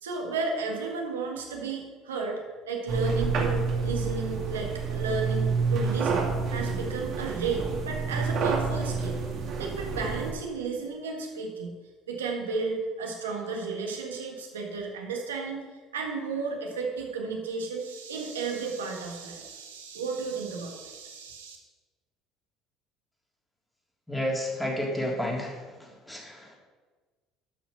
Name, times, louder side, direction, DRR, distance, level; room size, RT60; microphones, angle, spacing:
voice 1, 0.0-2.4 2.7-9.2 9.6-11.7 12.1-15.6 15.9-21.6, right 4 dB, 85° right, 1 dB, 1.6 m, -33 dB
sound 1, 2.9-10.3, right 4 dB, 55° right, 2.6 m, -29 dB
voice 2, 24.1-25.6 26.1-26.4, left 1 dB, 10° left, -1 dB, 3.4 m, -30 dB
13.0 x 6.0 x 5.5 m, 1.3 s
hypercardioid pair, 70°, 0 cm